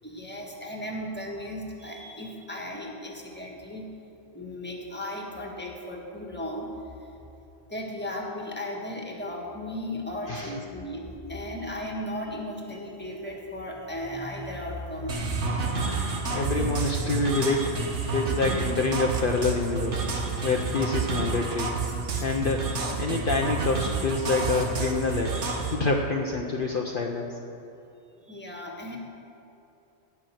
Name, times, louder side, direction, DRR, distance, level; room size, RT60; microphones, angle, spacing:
voice 1, 0.0-3.9 4.3-6.7 7.0-7.1 7.7-15.6 28.3-29.0, left 1 dB, 10° left, 0 dB, 1.7 m, -36 dB
sound 1, 15.1-25.7, right 4 dB, 80° right, 1.7 m, -29 dB
voice 2, 15.9-17.7 18.1-20.0 20.4-21.7 22.2-22.6 23.0-27.3, left 3 dB, 55° left, 1 dB, 0.9 m, -27 dB
16.5 x 6.0 x 7.8 m, 2.9 s
omnidirectional pair, 1.2 m